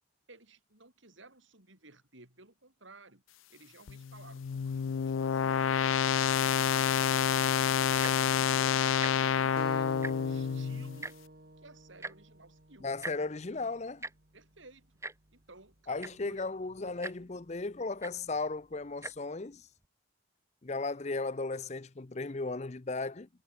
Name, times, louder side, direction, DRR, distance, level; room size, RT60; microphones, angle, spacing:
voice 1, 0.3-3.2 3.5-5.7 7.4-11.2 11.6-12.9 14.3-15.0 15.3-16.5 16.8-17.4, right 2 dB, 75° right, 5.9 m, -56 dB
sound 1, 3.9-11.0, left 8 dB, 80° left, 0.4 m, -28 dB
Tick-tock, 7.9-8.3 8.9-9.1 9.4-9.6 9.9-10.4 11.0-11.1 12.0-12.1 13.0-13.2 14.0-14.1 15.0-15.1 15.7-15.8 16.0-16.3 17.0-17.1 18.0-18.1 18.9-19.1 19.8-19.9, right 2 dB, 15° right, 1.0 m, -40 dB
sound 2, 9.6-14.7, right 1 dB, 50° right, 2.2 m, -49 dB
voice 2, 12.8-14.1 15.9-19.7 20.6-23.3, left 3 dB, 35° left, 0.6 m, -36 dB
head